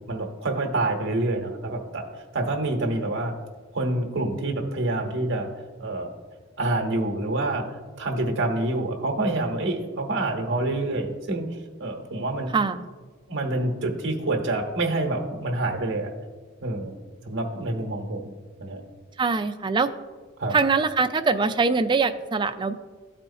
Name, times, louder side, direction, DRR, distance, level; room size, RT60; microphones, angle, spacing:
voice 1, 0.1-2.1 2.3-3.3 3.7-5.5 5.8-6.1 6.6-7.7 8.0-11.4 11.8-12.5 13.3-16.1 16.6-16.9 17.3-18.3 18.6-18.8 20.4-20.5, right 2 dB, 65° right, 2 dB, 1.0 m, -27 dB
voice 2, 12.5-12.9 19.2-19.9 20.5-22.7, right 4 dB, 25° right, 10 dB, 0.3 m, -23 dB
12.5 x 4.3 x 2.7 m, 1.4 s
head